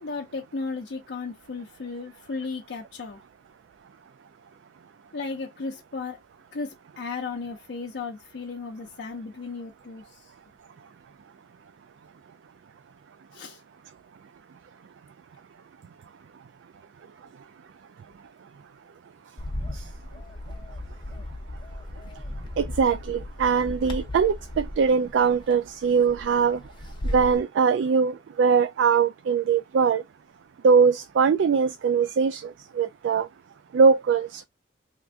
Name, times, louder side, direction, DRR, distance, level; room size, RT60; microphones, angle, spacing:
voice 1, 0.0-3.2 5.1-6.2 6.5-10.3 13.3-13.6, left 4 dB, 75° left, 0.5 m, -35 dB
Bird, 19.4-27.4, left 1 dB, 25° left, 0.6 m, -36 dB
voice 2, 22.6-26.6 27.1-30.0 30.6-33.3 33.7-34.5, right 5 dB, 85° right, 0.3 m, -22 dB
2.9 x 2.5 x 3.4 m
head